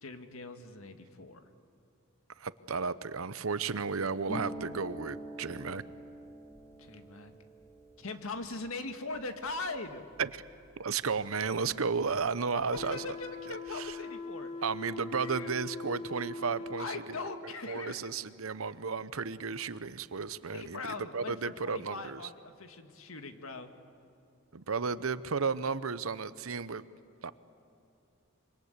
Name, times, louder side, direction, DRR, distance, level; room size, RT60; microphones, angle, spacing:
voice 1, 0.0-1.5 6.8-7.4 8.0-10.1 12.5-14.5 15.2-15.5 16.8-18.1 20.5-23.7, left 3 dB, 80° left, 7 dB, 1.9 m, -41 dB
voice 2, 2.4-5.8 10.2-10.4 10.8-13.1 13.5-14.0 14.6-17.2 17.4-20.8 21.1-22.2 24.5-26.8 27.2-27.3, right 5 dB, 80° right, 15 dB, 0.9 m, -33 dB
Harp, 4.3-11.8 12.0-13.1 13.4-14.0, right 1 dB, 15° left, 1.5 m, -47 dB
sound 1, 12.7-17.0, left 3 dB, 30° left, 2.2 m, -41 dB
26.0 x 25.0 x 8.2 m, 2.7 s
head